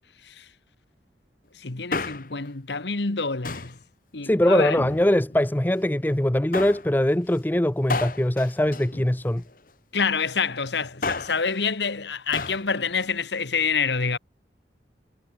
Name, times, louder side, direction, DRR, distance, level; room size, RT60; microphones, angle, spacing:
voice 1, 1.6-3.8 4.1-4.8 9.9-14.2, left 5 dB, 80° left, 1.4 m, -27 dB
Male speech man speaking, 1.7-2.5 3.4-3.8 4.6-5.4 6.5-6.9 7.9-9.6 10.8-11.5 12.3-12.7 12.9-13.0, left 3 dB, 50° left, 1.5 m, -32 dB
voice 2, 4.2-9.4, left 1 dB, 10° left, 0.5 m, -22 dB
head